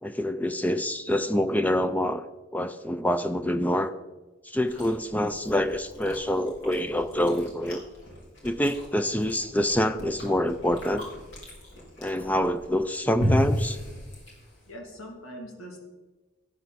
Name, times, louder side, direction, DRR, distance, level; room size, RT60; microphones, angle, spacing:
voice 1, 0.0-2.2 2.5-3.9 4.4-7.8 8.4-11.1 12.0-13.8, left 1 dB, 5° left, 10 dB, 0.4 m, -26 dB
Chewing mastication, 4.5-14.7, left 1 dB, 65° left, 4.1 m, -35 dB
voice 2, 14.6-15.8, equal, 85° left, 1 dB, 2.6 m, -42 dB
13.0 x 9.2 x 4.1 m, 1.2 s
head